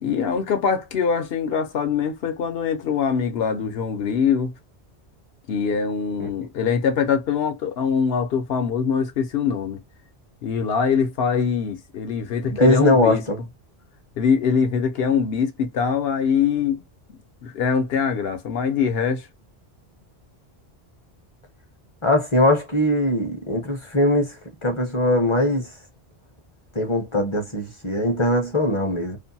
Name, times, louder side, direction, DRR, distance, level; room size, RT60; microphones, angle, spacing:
voice 1, 0.0-4.5 5.5-9.8 10.4-13.2 14.2-16.8 17.4-19.3, left 6 dB, 70° left, 0.9 m, -23 dB
voice 2, 12.4-13.4 22.0-24.4 24.6-25.7 26.7-29.2, left 1 dB, 35° left, 0.6 m, -21 dB
2.6 x 2.2 x 2.6 m
omnidirectional pair, 1.1 m